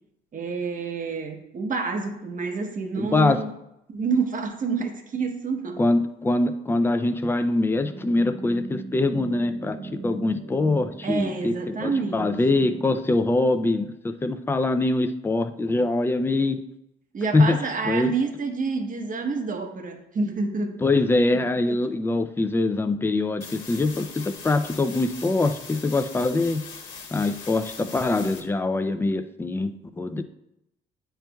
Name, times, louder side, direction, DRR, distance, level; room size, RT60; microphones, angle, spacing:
voice 1, 0.3-3.5 3.9-5.8 11.0-12.3 17.1-20.8 21.3-21.4 21.7-21.8, right 4 dB, 45° right, 5 dB, 0.9 m, -28 dB
voice 2, 3.0-3.4 5.8-16.6 17.3-17.6 17.8-18.1 20.8-26.6 27.1-30.2, left 2 dB, 10° left, 9 dB, 0.4 m, -23 dB
sound 1, 7.7-13.3, right 3 dB, 60° right, 1.7 m, -39 dB
sound 2, 23.4-28.4, left 5 dB, 85° left, 1.2 m, -41 dB
9.2 x 4.5 x 2.3 m, 0.84 s
cardioid pair, 90°, 20 cm